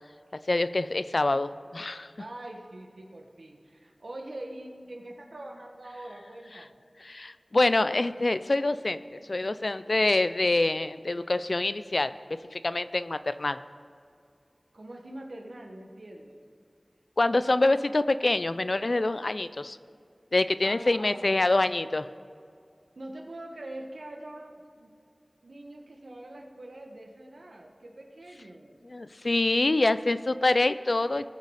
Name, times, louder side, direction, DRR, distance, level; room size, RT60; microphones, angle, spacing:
voice 1, 0.5-2.1 7.0-9.0 9.3-13.6 17.2-19.8 20.3-22.1 28.8-31.3, left 2 dB, 65° left, 13 dB, 0.4 m, -26 dB
voice 2, 2.2-6.7 14.7-16.4 20.6-21.4 22.9-24.9 25.4-28.8, right 1 dB, 90° right, 2 dB, 1.4 m, -43 dB
19.5 x 6.6 x 4.9 m, 2.4 s
wide cardioid pair, 55°, 0 cm